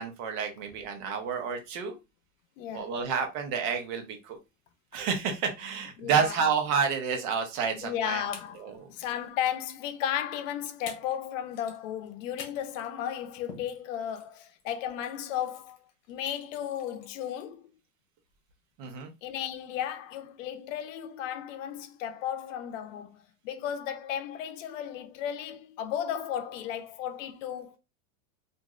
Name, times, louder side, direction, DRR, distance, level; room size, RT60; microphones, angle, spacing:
voice 1, 0.0-1.9 2.7-4.4 4.9-8.2 8.6-8.8 18.8-19.1, right 6 dB, 45° right, 0.8 m, -29 dB
voice 2, 2.6-2.9 6.0-6.4 7.8-15.8 16.1-17.7 19.2-27.8, left 10 dB, 75° left, 0.6 m, -34 dB
sound 1, 6.9-7.3 7.6-7.7 8.3-9.1 9.4-9.7 10.5-10.6 10.9-11.2 11.5-17.5, left 5 dB, 50° left, 1.0 m, -49 dB
2.9 x 2.6 x 2.4 m
supercardioid pair, 150°, 38 cm